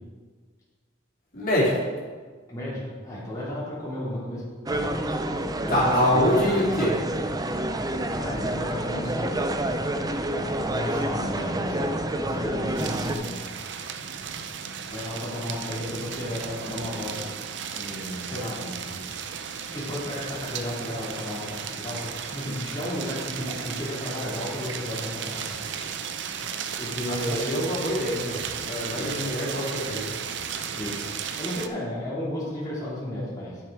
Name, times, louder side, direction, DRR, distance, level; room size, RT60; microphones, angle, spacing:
voice 1, 1.3-1.8 5.7-7.0 27.1-30.1, equal, 50° left, -6 dB, 3.0 m, -25 dB
voice 2, 2.5-4.4 5.6-6.3 8.2-9.7 10.6-12.0 12.2-13.4 14.9-17.3 17.7-19.0 19.7-26.3 26.8-27.5 28.9-29.3 30.8-33.6, left 1 dB, 20° left, -9 dB, 2.5 m, -33 dB
sound 1, 4.7-13.2, right 1 dB, 20° right, 0.5 m, -28 dB
sound 2, 12.8-31.7, right 7 dB, 65° right, 0.6 m, -35 dB
10.0 x 6.2 x 4.8 m, 1.5 s
head